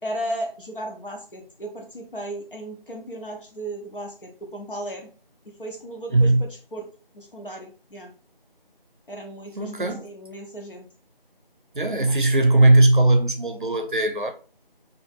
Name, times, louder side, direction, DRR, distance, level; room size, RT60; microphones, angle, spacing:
voice 1, 0.0-5.1 5.6-6.9 7.1-8.1 9.1-10.9, right 1 dB, 65° left, 0.9 m, -35 dB
voice 2, 6.1-6.4 9.6-10.1 11.7-14.3, right 2 dB, 60° right, 0.5 m, -18 dB
2.8 x 2.5 x 2.6 m
figure-of-eight pair, 175°, 29 cm